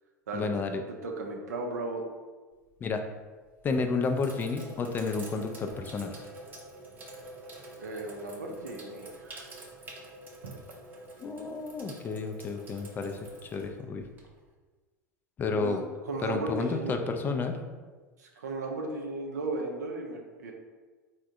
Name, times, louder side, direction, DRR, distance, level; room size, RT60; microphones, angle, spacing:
voice 1, 0.3-0.8 2.8-3.0 3.6-6.1 11.2-14.0 15.4-15.8 16.2-17.6, left 4 dB, 20° left, 5 dB, 0.3 m, -31 dB
voice 2, 1.0-2.0 7.8-9.5 10.4-10.5 15.5-17.0 18.2-20.5, right 2 dB, 65° right, 1 dB, 0.5 m, -36 dB
Sink (filling or washing), 2.5-2.9 3.6-14.5, right 1 dB, 20° right, 0.7 m, -47 dB
3.3 x 2.1 x 3.6 m, 1.3 s
figure-of-eight pair, 80°, 10 cm